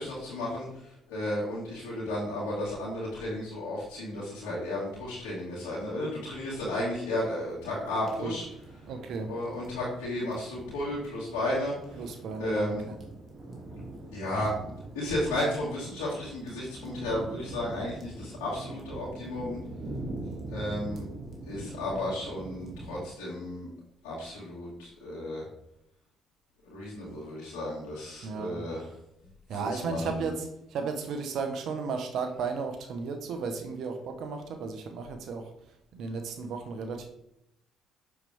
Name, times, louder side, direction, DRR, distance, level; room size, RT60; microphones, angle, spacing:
voice 1, 0.0-8.4 9.3-12.0 12.4-12.8 14.1-14.5 14.9-19.6 20.5-21.0 21.4-23.7 24.0-25.5 26.6-28.9 29.5-30.2, left 1 dB, 85° left, -8 dB, 2.2 m, -33 dB
sound 1, 7.2-23.0, right 2 dB, 45° right, 2.5 m, -43 dB
voice 2, 8.9-9.3 12.0-13.0 28.2-28.6 29.5-35.5 35.9-37.1, right 5 dB, 65° right, 6 dB, 1.1 m, -34 dB
6.9 x 6.7 x 3.5 m, 0.79 s
hypercardioid pair, 55°, 0 cm